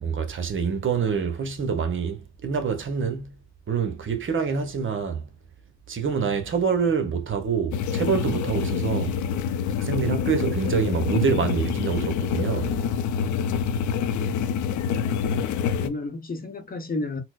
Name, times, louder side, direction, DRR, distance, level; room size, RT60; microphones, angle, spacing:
voice 1, 0.0-3.4 3.7-5.3 5.9-9.2 9.8-12.8, right 6 dB, 40° right, 0.8 m, -26 dB
sound 1, 7.7-15.9, left 7 dB, 75° left, 0.5 m, -26 dB
voice 2, 15.5-17.2, left 2 dB, 30° left, 0.8 m, -33 dB
4.2 x 2.1 x 2.3 m
cardioid pair, 90°, 30 cm